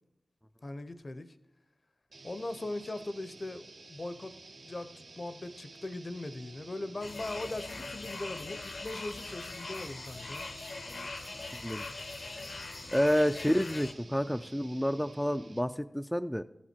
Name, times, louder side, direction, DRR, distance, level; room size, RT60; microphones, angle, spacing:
voice 1, 0.6-1.4 2.2-4.3 4.6-10.4, left 2 dB, 45° left, 0.6 m, -40 dB
sound 1, 2.1-15.8, right 3 dB, 65° right, 0.7 m, -52 dB
sound 2, 7.0-13.9, left 3 dB, 75° left, 0.9 m, -42 dB
voice 2, 11.5-11.9 12.9-16.4, equal, 5° left, 0.3 m, -29 dB
14.5 x 7.3 x 4.4 m
wide cardioid pair, 65°, 0 cm